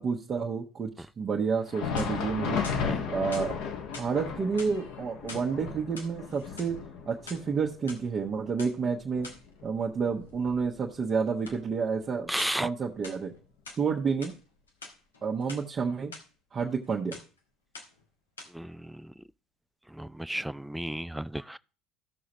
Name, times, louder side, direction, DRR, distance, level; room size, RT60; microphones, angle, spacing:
voice 1, 0.0-2.6 3.1-3.6 3.9-6.8 7.1-9.3 9.6-12.3 12.6-13.3 13.8-14.3 15.2-16.1 16.5-17.2, right 5 dB, 35° right, 1.2 m, -30 dB
Thunder, 1.6-11.0 11.4-11.5 12.2-12.4 13.4-13.5, left 6 dB, 60° left, 1.7 m, -35 dB
sound 1, 1.9-2.3 2.6-3.5 3.9-4.1 4.5-5.5 5.8-6.7 7.1-8.0 8.6-8.7 9.2-9.5 11.4-11.6 12.4-12.7 13.0-13.8 14.2-14.4 14.7-15.6 16.1-16.2 16.6-16.9 17.1-17.4 17.7-18.1 18.4-18.5, left 3 dB, 85° left, 1.3 m, -45 dB
voice 2, 12.3-12.7 18.5-19.1 20.0-21.6, right 1 dB, 5° right, 0.4 m, -33 dB
14.5 x 6.3 x 3.0 m
figure-of-eight pair, 60°, 0 cm